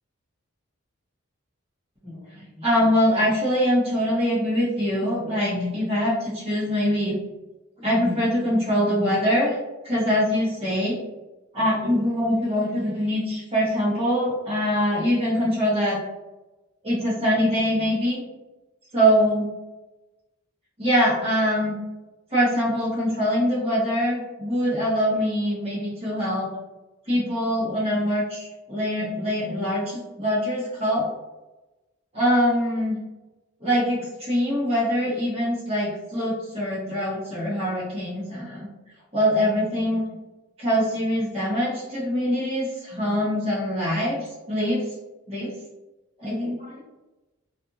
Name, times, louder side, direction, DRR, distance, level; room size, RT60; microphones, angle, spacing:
voice 1, 2.0-7.2 7.8-9.5 9.8-11.0 11.5-16.0 16.8-18.2 18.9-19.5 20.8-21.8 22.3-26.5 27.1-31.1 32.1-33.0 33.6-38.7 39.1-40.0 40.6-44.9 45.3-45.5 46.2-46.8, equal, 30° right, -9 dB, 1.0 m, -23 dB
2.6 x 2.5 x 2.6 m, 1.1 s
head